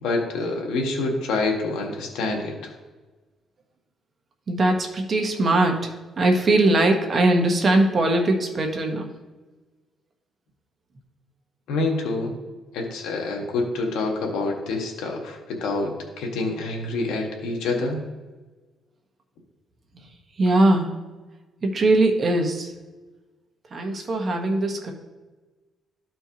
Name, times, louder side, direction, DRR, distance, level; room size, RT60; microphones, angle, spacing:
voice 1, 0.0-2.7 11.7-12.3 12.7-18.0, left 3 dB, 90° left, 1 dB, 1.5 m, -27 dB
voice 2, 4.5-9.1 20.4-20.9 21.6-22.7 23.7-24.9, right 2 dB, 45° right, 3 dB, 1.3 m, -21 dB
13.5 x 4.5 x 2.9 m, 1.2 s
cardioid pair, 90°, 0 cm